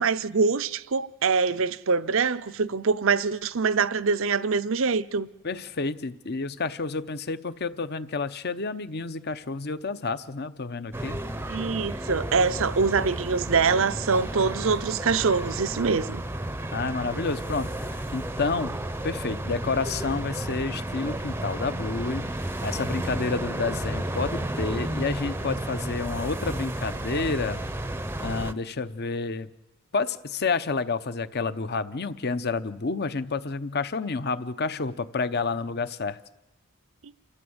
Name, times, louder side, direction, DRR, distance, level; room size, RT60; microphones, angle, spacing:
voice 1, 0.0-5.3 11.5-16.2, right 5 dB, 65° right, 0.6 m, -24 dB
voice 2, 5.4-11.2 16.7-18.8 19.0-22.3 22.6-27.6 28.2-29.5 29.9-36.2, left 4 dB, 50° left, 0.8 m, -29 dB
sound 1, 10.9-28.5, right 1 dB, 10° right, 0.7 m, -32 dB
28.5 x 13.5 x 8.0 m
head